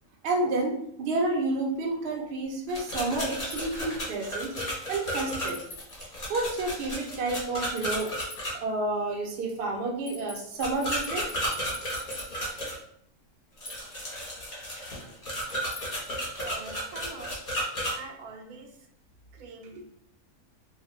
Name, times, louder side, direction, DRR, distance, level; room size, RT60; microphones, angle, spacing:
voice 1, 0.2-4.6 4.9-5.6 6.1-8.1 8.6-11.3, right 2 dB, 60° right, 0 dB, 0.7 m, -30 dB
sound 1, 2.7-8.5 10.6-12.8 13.6-17.9, equal, 40° left, 1.2 m, -33 dB
sound 2, 3.5-3.7 5.5-6.1 7.8-8.4 10.0-12.6 13.6-14.1 15.4-16.1, left 2 dB, 65° left, 1.0 m, -44 dB
voice 2, 16.4-17.3 17.9-18.8 19.3-19.8, right 4 dB, 80° right, 2 dB, 1.1 m, -44 dB
2.8 x 2.1 x 3.0 m, 0.70 s
omnidirectional pair, 1.6 m